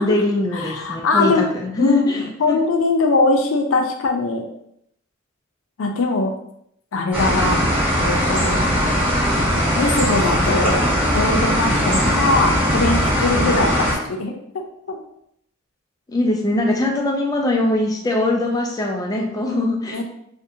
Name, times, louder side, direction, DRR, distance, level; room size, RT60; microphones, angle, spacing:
voice 1, 0.0-2.6 13.8-13.9 16.1-20.0, left 1 dB, 20° left, 0 dB, 0.3 m, -22 dB
voice 2, 0.5-1.5 1.8-4.5 5.8-6.3 6.9-7.7 8.0-8.7 9.8-15.0 19.9-20.0, left 3 dB, 85° left, 3 dB, 0.4 m, -21 dB
sound 1, 7.1-13.9, equal, 5° right, 0.9 m, -19 dB
2.6 x 2.1 x 2.6 m, 0.73 s
head